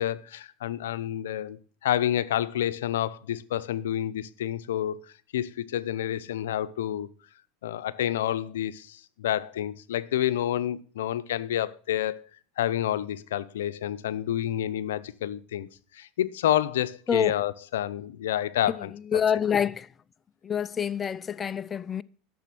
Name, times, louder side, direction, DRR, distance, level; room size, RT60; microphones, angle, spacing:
voice 1, 0.0-5.0 5.3-7.1 7.6-12.3 12.6-15.7 15.9-18.9, left 11 dB, 85° left, 0.7 m, -29 dB
voice 2, 18.7-19.9 20.4-22.0, left 8 dB, 25° left, 0.4 m, -27 dB
12.0 x 7.0 x 6.0 m
supercardioid pair, 115°, 0 cm